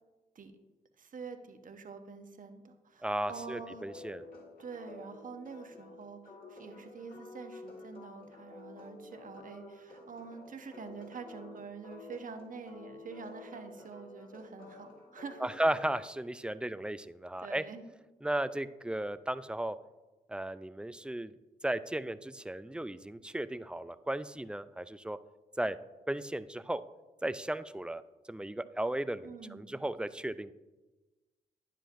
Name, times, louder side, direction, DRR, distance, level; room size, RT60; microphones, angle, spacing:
voice 1, 1.0-3.9 4.6-15.5 17.4-17.8 29.2-29.8, right 5 dB, 50° right, 7 dB, 0.9 m, -46 dB
voice 2, 3.0-4.3 15.4-17.6 18.2-19.8 20.3-21.3 21.6-25.2 25.6-25.8 26.1-26.8 27.2-28.0 28.3-30.5, right 1 dB, 5° right, 14 dB, 0.4 m, -35 dB
sound 1, 3.2-15.9, left 2 dB, 55° left, 2.3 m, -51 dB
9.9 x 7.6 x 2.6 m, 1.2 s
supercardioid pair, 45°, 18 cm